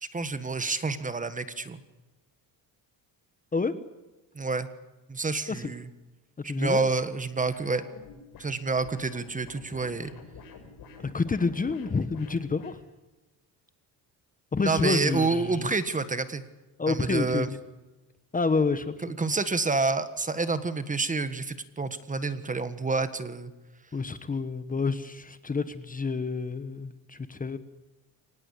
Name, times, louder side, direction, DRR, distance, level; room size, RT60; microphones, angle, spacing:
voice 1, 0.1-1.8 4.3-4.7 5.1-5.9 6.4-7.8 8.4-10.1 14.6-16.4 16.9-17.5 19.0-23.5, right 3 dB, 20° right, 11 dB, 1.5 m, -28 dB
voice 2, 6.4-6.8 11.0-12.8 14.5-15.7 16.8-17.5 18.3-19.2 23.9-27.6, left 4 dB, 20° left, 12 dB, 1.3 m, -29 dB
sound 1, 7.5-12.8, left 4 dB, 60° left, 6.6 m, -48 dB
24.5 x 19.0 x 8.5 m, 1.1 s
cardioid pair, 120°, 39 cm